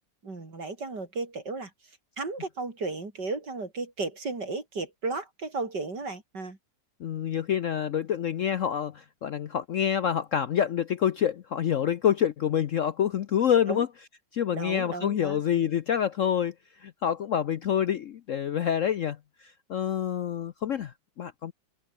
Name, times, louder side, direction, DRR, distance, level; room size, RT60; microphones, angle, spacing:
voice 1, 0.2-6.6 13.7-13.9 14.5-15.7, right 3 dB, 65° right, 5.0 m, -35 dB
voice 2, 7.0-13.9 14.3-21.5, left 9 dB, 60° left, 0.8 m, -27 dB
omnidirectional pair, 2.0 m